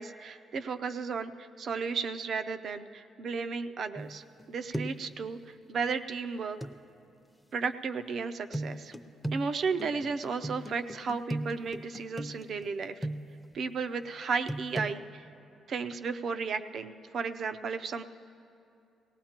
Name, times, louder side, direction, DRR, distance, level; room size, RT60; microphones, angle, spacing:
voice 1, 0.0-6.6 7.5-8.9 9.3-13.1 13.5-15.3 15.7-18.0, right 5 dB, 60° right, 9 dB, 0.5 m, -34 dB
sound 1, 4.0-4.4 4.7-5.1 6.6-6.8 8.5-13.5 14.5-14.9, right 1 dB, ahead, 0.6 m, -37 dB
18.5 x 18.0 x 2.9 m, 2.6 s
cardioid pair, 90°, 0 cm